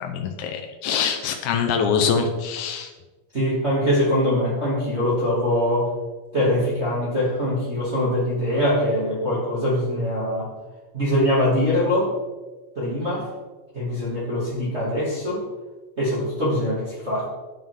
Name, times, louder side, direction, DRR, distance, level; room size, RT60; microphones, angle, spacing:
voice 1, 0.0-2.9, left 6 dB, 80° left, 4 dB, 2.1 m, -24 dB
voice 2, 3.3-5.9 6.3-10.5 10.9-12.1 12.8-13.3 13.7-15.4 16.0-17.3, left 1 dB, 25° right, -8 dB, 2.4 m, -23 dB
9.4 x 7.9 x 3.7 m, 1.2 s
omnidirectional pair, 3.5 m